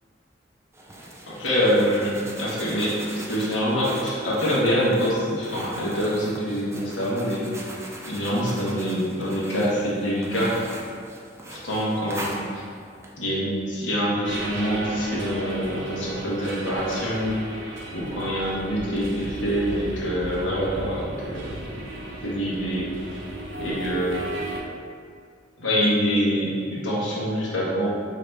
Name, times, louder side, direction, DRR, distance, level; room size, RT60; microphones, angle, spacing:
sound 1, 0.7-13.1, right 1 dB, 15° right, 0.5 m, -40 dB
voice 1, 1.3-3.0 3.3-7.5 8.0-10.6 11.5-12.6 13.2-21.5 22.2-22.9 23.6-24.3 25.6-27.9, equal, 85° left, -7 dB, 1.2 m, -25 dB
sound 2, 14.2-24.6, right 1 dB, 85° right, 0.7 m, -35 dB
5.0 x 2.8 x 3.3 m, 2.2 s
head